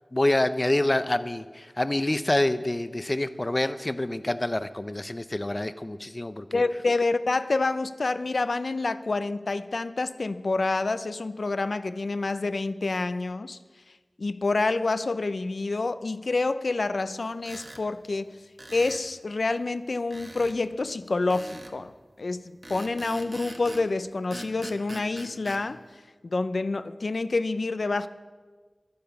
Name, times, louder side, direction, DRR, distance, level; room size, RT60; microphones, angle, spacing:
voice 1, 0.1-6.6, left 1 dB, 35° left, 12 dB, 0.6 m, -27 dB
voice 2, 6.5-13.6 14.2-18.4 18.7-21.9 22.2-25.8 26.2-28.1, left 3 dB, 75° left, 13 dB, 0.5 m, -28 dB
sound 1, 17.4-17.8 18.6-19.1 20.1-20.6 21.3-21.8 22.6-23.9 24.3-25.6, right 1 dB, 40° right, 1.5 m, -42 dB
11.5 x 10.5 x 7.0 m, 1.4 s
wide cardioid pair, 45°, 0 cm